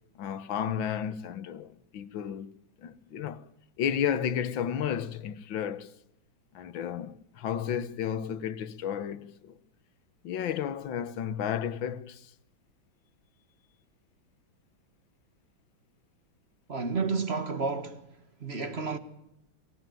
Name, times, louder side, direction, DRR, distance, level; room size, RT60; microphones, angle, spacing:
voice 1, 0.2-2.5 2.8-3.5 3.8-5.9 6.6-9.6 10.2-12.3, left 8 dB, 70° left, 1.8 m, -32 dB
voice 2, 16.7-18.1 18.4-19.0, right 4 dB, 35° right, 1.7 m, -31 dB
24.0 x 18.0 x 9.2 m
omnidirectional pair, 2.2 m